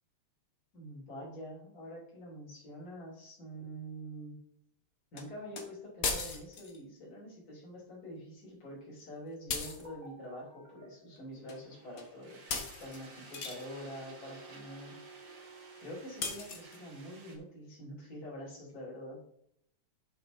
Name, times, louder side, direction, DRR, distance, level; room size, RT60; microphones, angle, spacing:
voice 1, 0.7-4.4 5.1-15.0 15.8-19.2, equal, 30° left, -5 dB, 3.6 m, -46 dB
sound 1, 5.2-5.3 5.6-5.7 6.0-6.8 9.5-9.9 11.5-11.6 12.0-12.1 12.5-13.7 16.2-16.8, left 4 dB, 90° left, 0.7 m, -37 dB
sound 2, 9.7-17.4, right 3 dB, 50° right, 2.3 m, -53 dB
9.0 x 7.1 x 3.9 m, 0.72 s
omnidirectional pair, 3.4 m